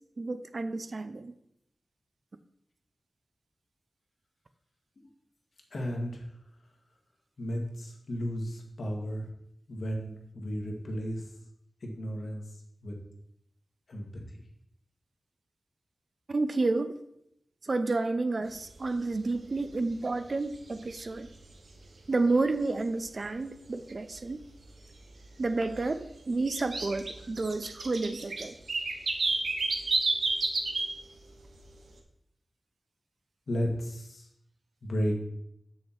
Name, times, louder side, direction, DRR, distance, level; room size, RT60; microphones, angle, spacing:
voice 1, 0.2-1.3 16.3-16.9 17.6-21.3 22.1-24.4 25.4-28.5, right 3 dB, 50° right, 11 dB, 0.5 m, -30 dB
voice 2, 5.7-6.2 7.4-9.2 9.7-11.2 11.8-12.4 12.8-12.9 13.9-14.1 33.5-34.2 34.8-35.2, equal, 75° left, 1 dB, 1.7 m, -33 dB
sound 1, 18.5-18.6 19.0-19.2 19.5-20.0 20.4-21.6 22.0-22.1 22.6-22.7 23.2-23.3 23.6-23.7 24.2-25.0 25.2-30.9 31.2-31.6, right 3 dB, 85° right, 1.1 m, -31 dB
7.5 x 6.4 x 4.5 m, 0.78 s
wide cardioid pair, 90°, 0 cm